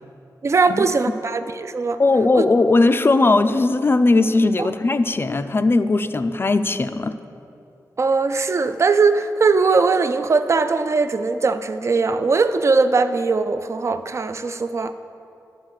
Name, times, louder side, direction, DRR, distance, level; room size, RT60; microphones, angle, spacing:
voice 1, 0.4-2.0 2.3-2.4 4.6-4.7 8.0-14.9, right 4 dB, 45° right, 11 dB, 0.4 m, -20 dB
voice 2, 2.0-7.1, left 3 dB, 35° left, 10 dB, 0.3 m, -18 dB
11.5 x 4.2 x 6.4 m, 2.6 s
wide cardioid pair, 115°, 7 cm